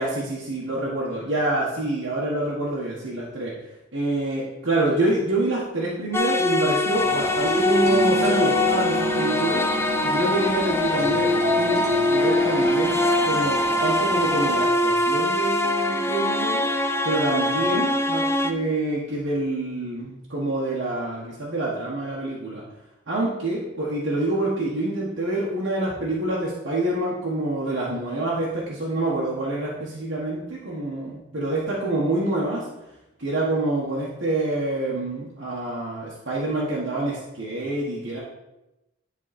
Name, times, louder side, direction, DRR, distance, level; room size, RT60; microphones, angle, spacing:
voice 1, 0.0-3.5 3.9-9.6 10.0-16.6 17.0-22.6 23.1-32.7 33.2-38.2, right 2 dB, 65° right, -6 dB, 1.6 m, -26 dB
sound 1, 6.1-18.5, left 1 dB, 15° left, 0.4 m, -23 dB
sound 2, 6.9-14.7, left 1 dB, 35° left, 2.1 m, -33 dB
sound 3, 7.5-12.6, left 1 dB, 35° right, 1.9 m, -27 dB
10.5 x 4.1 x 4.3 m, 0.94 s
head